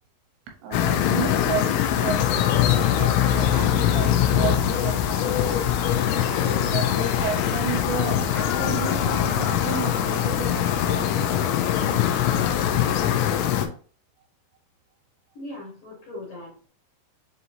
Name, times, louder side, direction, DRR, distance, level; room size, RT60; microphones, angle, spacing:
voice 1, 0.6-2.2 2.9-5.6 6.5-11.3, right 7 dB, 80° right, 2 dB, 2.9 m, -32 dB
sound 1, 0.7-13.7, left 10 dB, 85° left, 2.4 m, -22 dB
voice 2, 6.3-6.7 15.3-16.5, left 2 dB, 60° left, -4 dB, 2.3 m, -40 dB
7.0 x 2.7 x 2.7 m, 0.43 s
omnidirectional pair, 5.4 m